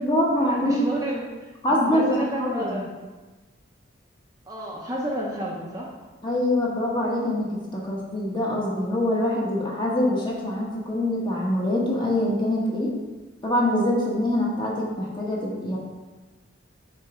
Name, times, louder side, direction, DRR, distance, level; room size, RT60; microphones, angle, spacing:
voice 1, 0.0-0.8 1.6-2.8 6.2-12.9 13.4-15.8, left 1 dB, 25° left, -3 dB, 1.1 m, -24 dB
voice 2, 0.6-1.5 1.9-2.9 4.5-5.9, equal, 20° right, -3 dB, 0.6 m, -30 dB
5.3 x 4.0 x 4.9 m, 1.2 s
head